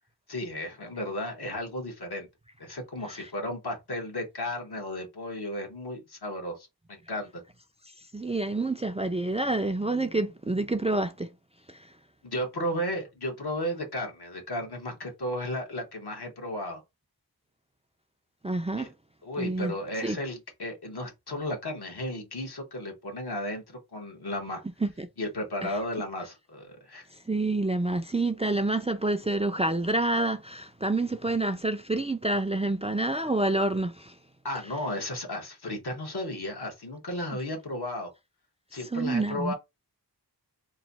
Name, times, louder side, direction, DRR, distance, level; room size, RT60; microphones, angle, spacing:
voice 1, 0.3-2.3 2.6-7.4 12.2-16.8 18.8-18.9 19.2-24.6 25.2-27.1 34.4-38.1 38.7-39.5, left 1 dB, 70° left, 1.3 m, -34 dB
voice 2, 8.1-11.3 11.7-11.8 18.4-18.9 19.4-19.7 20.0-20.2 24.8-25.1 27.3-34.2 38.9-39.5, right 2 dB, 15° right, 0.4 m, -28 dB
3.1 x 2.6 x 4.1 m
wide cardioid pair, 70°, 41 cm